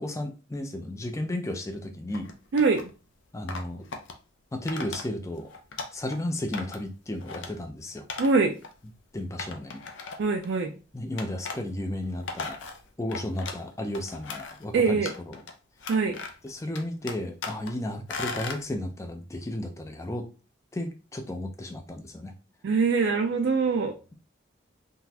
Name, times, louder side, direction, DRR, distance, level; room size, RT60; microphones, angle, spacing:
voice 1, 0.0-2.3 3.3-3.9 4.5-5.5 5.9-8.1 9.1-10.1 10.9-12.7 13.0-15.4 16.4-20.3 20.7-22.3, left 1 dB, 15° left, 5 dB, 0.4 m, -34 dB
sound 1, 2.1-2.9 3.5-4.1 4.7-5.0 5.4-6.2 6.5-6.9 7.2-7.5 8.1-8.3 8.6-8.7 9.4-10.4 11.2-11.6 12.0-13.6 13.9-14.6 15.0-15.5 15.8-16.5 16.7-17.7 18.1-18.6, left 4 dB, 75° left, 0.5 m, -37 dB
voice 2, 2.5-2.8 8.2-8.5 10.2-10.7 14.7-15.1 15.9-16.2 22.6-24.0, right 4 dB, 65° right, 4 dB, 0.4 m, -23 dB
3.8 x 2.4 x 2.7 m, 0.33 s
head